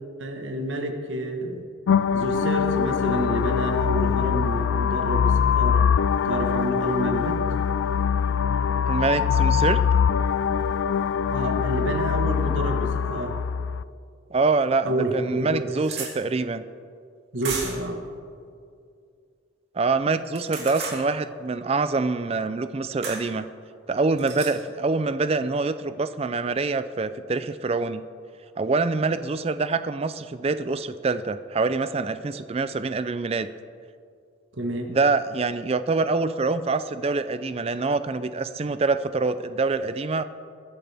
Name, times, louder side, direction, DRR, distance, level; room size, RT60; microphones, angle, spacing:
voice 1, 0.2-1.6 2.1-5.9 6.2-7.4 11.3-13.4 14.8-15.7 17.3-18.0 34.5-34.9, right 1 dB, 75° right, 5 dB, 1.4 m, -28 dB
sound 1, 1.9-13.8, left 7 dB, 80° left, 0.3 m, -23 dB
voice 2, 8.9-9.8 14.3-16.6 19.7-23.5 23.9-28.0 28.6-33.5 34.9-40.2, right 3 dB, 30° right, 12 dB, 0.4 m, -25 dB
sound 2, 14.5-14.6 15.1-15.2 15.4-16.1 17.4-17.9 20.2-21.0 23.0-23.2 24.2-24.5, right 5 dB, 60° right, 2.8 m, -33 dB
21.0 x 11.0 x 3.5 m, 2.3 s
head